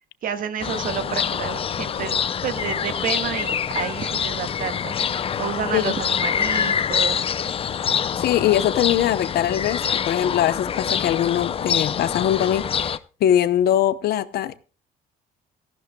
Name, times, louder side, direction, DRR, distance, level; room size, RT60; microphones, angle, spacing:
voice 1, 0.2-2.1 2.4-5.0 5.4-7.3, right 8 dB, 55° right, 8 dB, 1.6 m, -29 dB
sound 1, 0.6-13.0, left 7 dB, 35° left, 0.5 m, -25 dB
voice 2, 7.9-12.9 13.2-14.6, left 11 dB, 70° left, 14 dB, 0.9 m, -22 dB
17.5 x 14.0 x 2.3 m, 0.35 s
cardioid pair, 110°, 17 cm